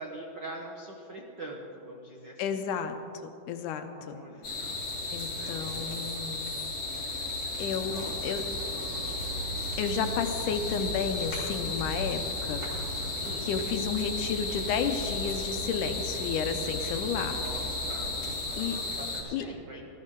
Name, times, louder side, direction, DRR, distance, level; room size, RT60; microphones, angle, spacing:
voice 1, 0.0-2.8 4.0-4.7 5.0-6.1 7.8-8.3 13.2-13.5 17.0-19.9, right 1 dB, 70° right, -1 dB, 1.0 m, -44 dB
voice 2, 2.4-3.0 3.5-4.2 5.1-6.5 7.6-8.4 9.8-12.6 13.4-17.4 18.6-18.8 19.3-19.4, left 6 dB, 75° left, 7 dB, 2.1 m, -32 dB
sound 1, 4.4-19.2, left 2 dB, 40° left, 4.3 m, -34 dB
sound 2, 7.7-18.3, equal, 85° right, 4.2 m, -40 dB
19.0 x 13.5 x 3.7 m, 2.8 s
omnidirectional pair, 3.9 m